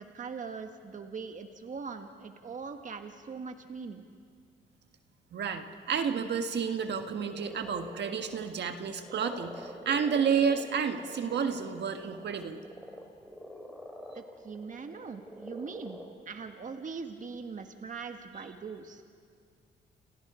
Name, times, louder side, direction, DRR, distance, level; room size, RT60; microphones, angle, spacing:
voice 1, 0.0-4.1 14.1-16.0 16.2-19.0, right 5 dB, 40° right, 6 dB, 1.5 m, -41 dB
voice 2, 5.3-12.6, right 6 dB, 60° right, 6 dB, 1.6 m, -30 dB
sound 1, 6.9-16.1, equal, ahead, 4.3 m, -46 dB
29.5 x 27.5 x 5.0 m, 2.1 s
cardioid pair, 90°, 20 cm